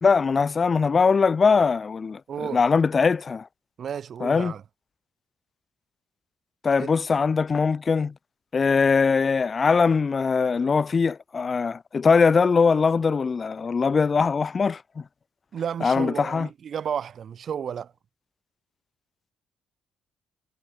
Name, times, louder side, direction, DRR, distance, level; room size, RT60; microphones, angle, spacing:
voice 1, 0.0-3.5 4.2-4.5 6.6-8.1 8.5-14.8 15.8-16.5, left 5 dB, 40° left, 1.3 m, -21 dB
voice 2, 2.3-2.6 3.8-4.6 6.8-6.9 15.5-17.9, right 8 dB, 55° right, 6.9 m, -32 dB
hypercardioid pair, 45°, 0 cm